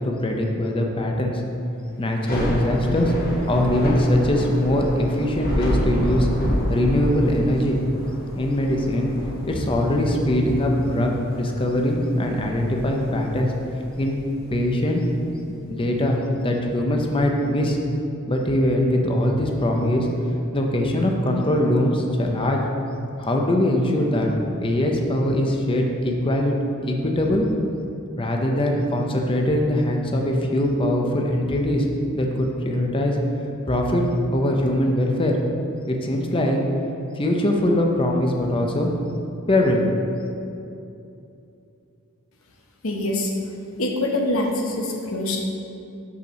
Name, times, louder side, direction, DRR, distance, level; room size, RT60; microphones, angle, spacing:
voice 1, 0.0-1.4 2.0-3.1 3.5-6.3 6.7-7.8 8.3-9.1 9.5-13.5 14.0-14.2 14.5-15.0 15.6-17.8 18.3-20.1 20.5-22.6 23.2-24.3 24.6-27.5 28.2-31.9 32.1-33.2 33.7-34.1 34.3-35.4 35.9-36.6 37.1-38.9 39.5-39.9, left 1 dB, 25° left, 1 dB, 0.6 m, -22 dB
Thunder / Rain, 2.1-15.3, equal, 45° left, 1.3 m, -29 dB
voice 2, 42.8-43.3 43.8-45.4, left 1 dB, 65° left, 0 dB, 1.0 m, -24 dB
5.6 x 4.5 x 6.1 m, 2.7 s
head